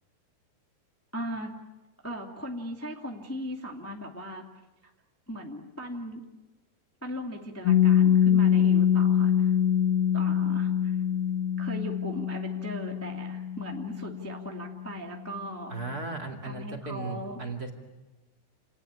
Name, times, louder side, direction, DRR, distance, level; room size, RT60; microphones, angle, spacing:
voice 1, 1.1-1.5 2.0-4.4 4.8-4.9 5.3-6.2 7.0-9.6 10.1-11.0 11.6-15.7 16.4-17.4, equal, 10° left, 1 dB, 0.7 m, -38 dB
Piano, 7.7-14.9, left 9 dB, 80° left, 4.2 m, -24 dB
voice 2, 15.7-17.7, right 3 dB, 30° right, 2 dB, 2.1 m, -36 dB
29.0 x 19.5 x 9.8 m, 1.1 s
omnidirectional pair, 4.8 m